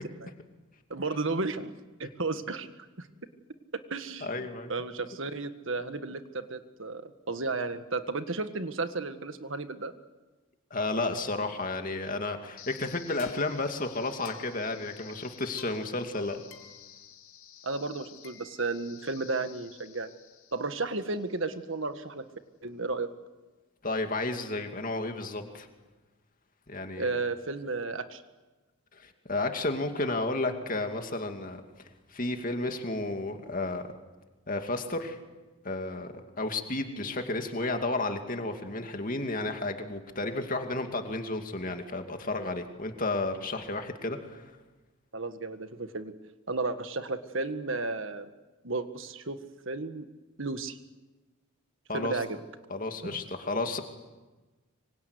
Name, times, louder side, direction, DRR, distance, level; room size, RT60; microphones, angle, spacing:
voice 1, 0.9-1.7 2.0-2.7 3.0-3.1 3.9-9.9 17.6-20.1 20.5-22.2 22.6-23.1 27.0-28.2 45.1-46.1 46.5-48.3 48.6-49.4 49.7-50.1 50.4-50.8 51.9-52.4 53.0-53.2, right 3 dB, 60° right, 9 dB, 1.7 m, -33 dB
voice 2, 4.2-4.7 10.7-16.4 23.8-25.7 26.7-27.0 28.9-31.6 32.1-33.8 34.5-35.2 35.6-44.5 51.9-52.2 52.7-53.8, left 2 dB, 40° left, 5 dB, 2.5 m, -32 dB
sound 1, 12.6-21.6, left 9 dB, 85° left, 2.9 m, -51 dB
25.5 x 24.0 x 9.7 m, 1.2 s
head